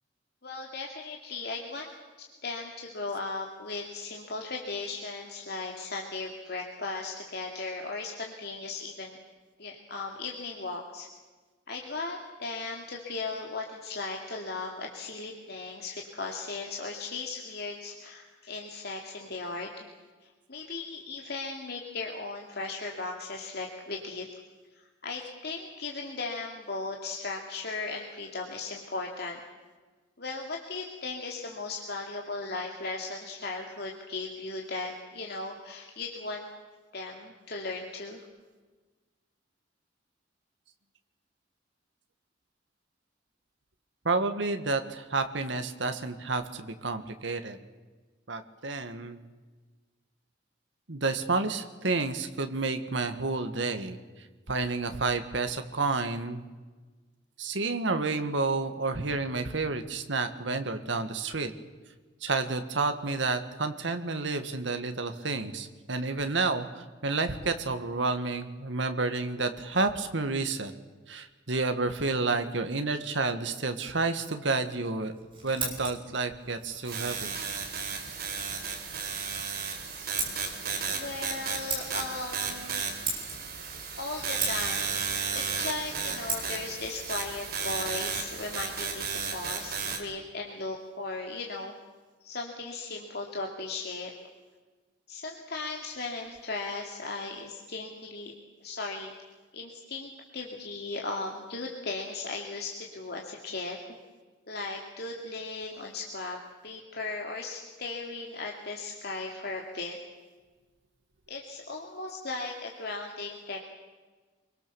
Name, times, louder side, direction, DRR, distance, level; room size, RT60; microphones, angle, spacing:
voice 1, 0.4-1.9 2.2-9.2 9.6-11.1 11.7-19.8 20.2-24.3 24.7-29.4 30.2-36.5 36.9-38.2 80.9-82.8 84.0-85.0 85.3-89.0 89.3-91.7 92.2-94.2 95.1-98.3 98.6-99.1 99.5-104.0 104.5-106.4 106.6-110.0 111.3-113.6, left 3 dB, 55° left, 1 dB, 2.6 m, -37 dB
voice 2, 44.1-47.6 48.3-49.2 50.9-54.0 54.5-56.4 57.4-61.5 62.2-70.7 71.1-75.1 75.4-77.3, right 3 dB, 75° right, 7 dB, 1.6 m, -30 dB
Scissors, 75.0-88.6, right 4 dB, 25° right, 7.5 m, -41 dB
sound 1, 76.9-90.0, right 5 dB, 55° right, 4.1 m, -34 dB
26.0 x 23.5 x 7.0 m, 1.3 s
head